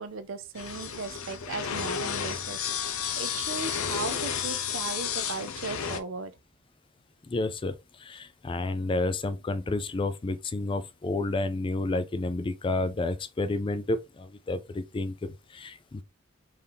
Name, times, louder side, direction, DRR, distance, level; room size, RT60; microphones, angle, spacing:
voice 1, 0.0-6.4, right 4 dB, 65° right, 0.5 m, -37 dB
sound 1, 0.6-6.0, left 7 dB, 90° left, 0.6 m, -32 dB
voice 2, 7.3-7.7 8.0-16.0, left 2 dB, 25° left, 0.3 m, -30 dB
3.8 x 2.7 x 3.3 m
head